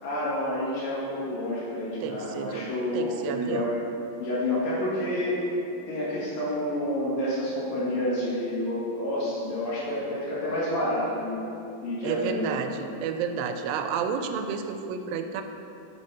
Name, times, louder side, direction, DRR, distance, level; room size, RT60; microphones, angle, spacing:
voice 1, 0.0-3.7 4.2-5.4 5.9-11.4 11.8-12.5, left 1 dB, 75° left, -8 dB, 3.3 m, -29 dB
voice 2, 2.0-3.7 12.0-15.4, right 6 dB, 90° right, 7 dB, 2.3 m, -31 dB
8.5 x 4.3 x 4.7 m, 2.8 s
omnidirectional pair, 4.0 m